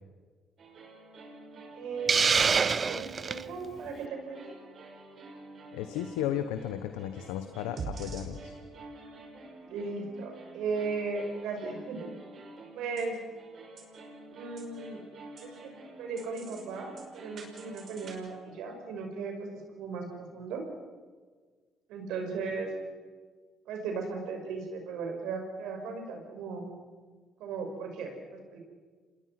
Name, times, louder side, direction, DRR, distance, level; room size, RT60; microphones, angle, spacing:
sound 1, 0.6-18.1, right 3 dB, 55° right, 5.6 m, -47 dB
voice 1, 1.7-4.6 9.7-12.1 12.7-13.2 14.3-15.0 15.4-15.7 16.0-20.6 21.9-22.7 23.7-26.7 27.4-28.6, right 4 dB, 80° right, 3 dB, 5.7 m, -37 dB
Hiss, 2.1-3.4, right 5 dB, 40° right, 0.6 m, -25 dB
voice 2, 5.7-8.5, left 11 dB, 90° left, 9 dB, 1.1 m, -34 dB
27.0 x 21.0 x 6.0 m, 1.5 s
supercardioid pair, 65°, 0 cm